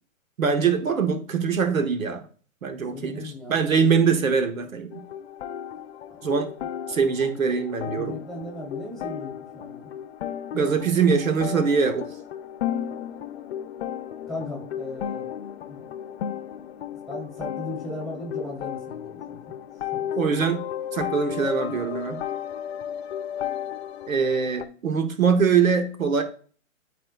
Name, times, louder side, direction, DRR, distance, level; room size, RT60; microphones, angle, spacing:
voice 1, 0.4-2.2 2.6-5.0 6.2-6.5 6.9-8.2 10.5-12.1 20.1-20.6 20.9-22.2 24.1-26.2, right 6 dB, 85° right, 7 dB, 1.2 m, -23 dB
voice 2, 2.9-4.2 6.1-6.7 7.9-9.9 14.3-15.3 15.6-16.1 17.1-19.5 19.9-20.4, left 1 dB, ahead, -2 dB, 3.0 m, -38 dB
sound 1, 4.9-24.6, left 10 dB, 50° left, 0.7 m, -34 dB
12.0 x 4.3 x 2.3 m, 0.42 s
hypercardioid pair, 130°, 40 cm